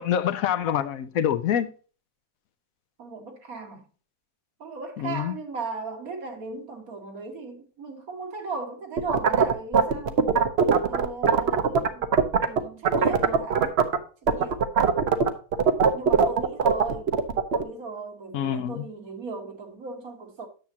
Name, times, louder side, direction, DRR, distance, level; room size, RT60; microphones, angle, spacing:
voice 1, 0.0-1.7 5.0-5.3 18.3-18.8, left 9 dB, 70° left, 1.1 m, -26 dB
voice 2, 3.0-3.9 4.6-10.2 10.8-12.2 12.4-13.7 14.2-14.7 15.9-17.2 17.5-20.5, right 4 dB, 70° right, 2.1 m, -36 dB
sound 1, 9.0-12.6 12.8-14.0 14.3-17.6, right 6 dB, 50° right, 1.0 m, -20 dB
9.8 x 7.2 x 2.8 m
omnidirectional pair, 1.6 m